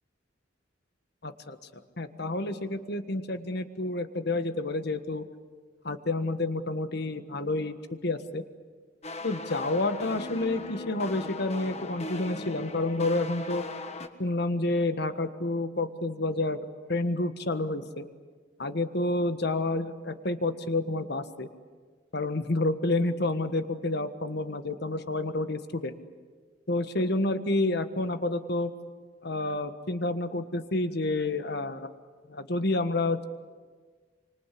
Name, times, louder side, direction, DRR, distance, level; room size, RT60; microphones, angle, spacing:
voice 1, 1.2-1.6 2.0-5.3 5.8-8.4 9.2-13.6 14.2-16.6 16.9-18.0 18.6-21.5 22.1-26.0 26.7-28.7 29.2-31.9 32.3-33.2, left 2 dB, 60° left, 10 dB, 1.5 m, -29 dB
sound 1, 9.0-14.1, left 2 dB, 35° left, 1.5 m, -38 dB
25.5 x 25.5 x 8.5 m, 1.5 s
head